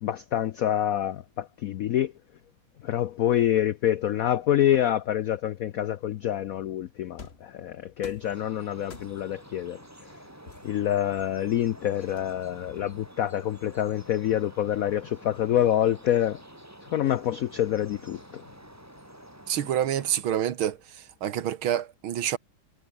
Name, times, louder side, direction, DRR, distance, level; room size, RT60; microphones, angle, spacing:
voice 1, 0.0-2.1 2.8-9.8 10.6-16.4 16.9-18.4, left 11 dB, 85° left, 0.7 m, -26 dB
sound 1, 7.2-7.5 8.0-8.4 8.9-9.4 10.5-11.6 12.2-13.2, left 4 dB, 30° left, 2.0 m, -47 dB
sound 2, 8.2-20.2, right 1 dB, 5° right, 3.1 m, -49 dB
voice 2, 19.5-20.8 21.2-22.4, right 10 dB, 85° right, 2.1 m, -27 dB
omnidirectional pair, 2.2 m